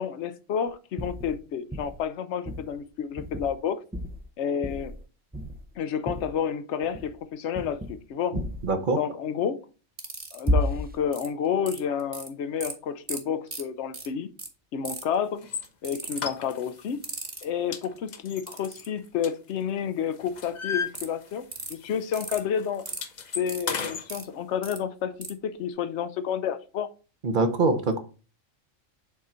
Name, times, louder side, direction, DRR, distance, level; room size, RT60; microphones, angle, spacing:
voice 1, 0.0-3.8 4.4-4.9 5.8-8.4 9.0-9.7 10.3-14.3 14.7-15.5 15.8-17.0 17.4-22.8 23.3-26.9, left 8 dB, 65° left, 0.9 m, -30 dB
sound 1, 1.0-1.4 1.7-2.0 2.4-2.7 3.2-3.6 3.9-4.3 4.6-5.0 5.3-5.7 6.1-6.3 6.8-7.2 7.5-8.0 8.3-8.7 10.5-11.0, equal, 10° right, 0.4 m, -31 dB
voice 2, 8.3-9.0 27.2-28.0, right 3 dB, 45° right, 0.9 m, -24 dB
sound 2, 10.0-10.5 11.1-11.3 11.7-12.3 12.6-12.7 13.1-13.2 13.5-13.6 13.9-14.1 14.4-14.5 14.8-15.1 15.8-16.2 17.0-17.4 18.5-18.9 20.9-21.1 21.5-21.7 22.1-22.4 22.9-23.0 23.5-24.2 24.6-24.8 25.2-25.3, right 3 dB, 30° right, 1.2 m, -36 dB
sound 3, 15.4-15.7 16.2-16.9 17.2-17.4 17.7-19.8 20.1-21.6 21.8-22.0 22.3-24.1, left 6 dB, 40° left, 0.7 m, -34 dB
7.3 x 3.9 x 4.3 m
omnidirectional pair, 1.3 m